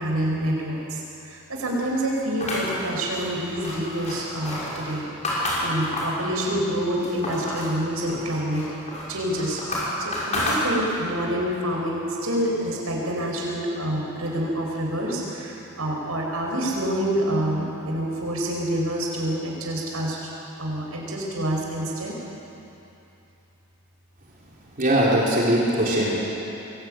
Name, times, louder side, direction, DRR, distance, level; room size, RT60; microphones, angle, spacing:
voice 1, 0.0-8.7 9.1-9.6 10.0-20.2 20.6-22.1, right 1 dB, 75° right, -2 dB, 5.9 m, -27 dB
sound 1, 2.4-6.2 6.7-7.7 8.1-11.1, left 1 dB, 30° left, 6.3 m, -29 dB
voice 2, 24.8-26.1, right 1 dB, 40° right, -5 dB, 4.0 m, -20 dB
23.5 x 18.0 x 9.2 m, 2.9 s
head